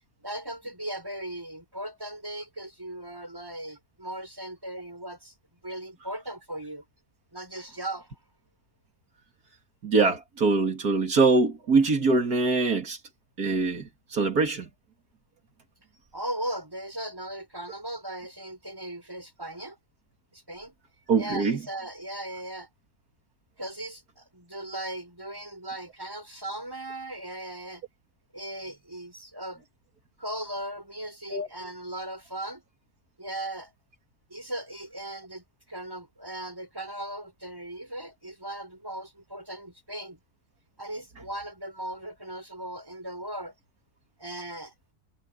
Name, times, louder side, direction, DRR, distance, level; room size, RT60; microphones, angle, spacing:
voice 1, 0.2-5.3 5.6-6.8 7.3-8.1 16.1-19.8 20.3-20.7 21.2-22.7 23.6-27.8 28.3-29.7 30.2-32.6 33.2-33.7 34.3-40.2 40.8-43.5 44.2-44.7, right 1 dB, 15° right, 6.2 m, -38 dB
voice 2, 9.8-13.0 13.4-14.7 21.1-21.6 31.3-31.5, right 3 dB, 80° right, 3.0 m, -23 dB
omnidirectional pair, 1.6 m